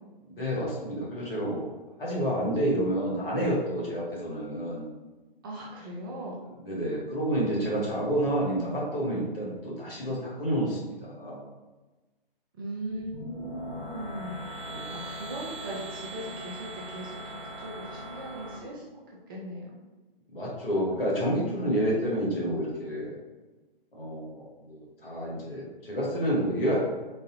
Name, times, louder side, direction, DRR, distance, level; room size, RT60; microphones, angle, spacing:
voice 1, 0.3-1.6 2.0-4.9 6.6-11.4 14.6-15.0 20.3-23.1 23.9-26.8, equal, 70° left, -5 dB, 1.5 m, -29 dB
voice 2, 5.4-6.4 12.6-14.6 14.9-18.8 19.3-19.8, right 1 dB, 25° right, -4 dB, 0.5 m, -39 dB
sound 1, 12.9-18.6, right 1 dB, 45° right, 1.2 m, -40 dB
4.0 x 2.6 x 2.6 m, 1.2 s
figure-of-eight pair, 125°, 29 cm